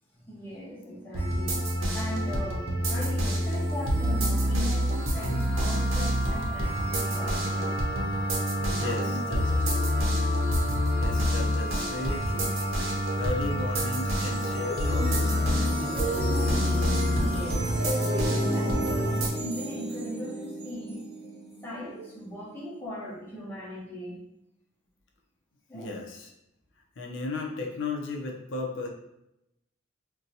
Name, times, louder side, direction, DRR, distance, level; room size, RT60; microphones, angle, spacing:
voice 1, 0.1-7.8 8.6-9.7 16.8-21.1 21.6-24.2 25.7-25.9, left 1 dB, 10° left, 0.7 m, -39 dB
sound 1, 1.1-19.3, equal, 90° right, 0.7 m, -27 dB
Wind instrument woodwind instrument, 5.1-17.6, left 2 dB, 35° left, 1.0 m, -37 dB
voice 2, 8.7-9.9 10.9-16.0 25.7-26.3 27.0-28.9, left 3 dB, 75° left, 0.5 m, -36 dB
sound 2, 13.5-22.8, equal, 30° right, 0.5 m, -33 dB
2.7 x 2.2 x 4.0 m
head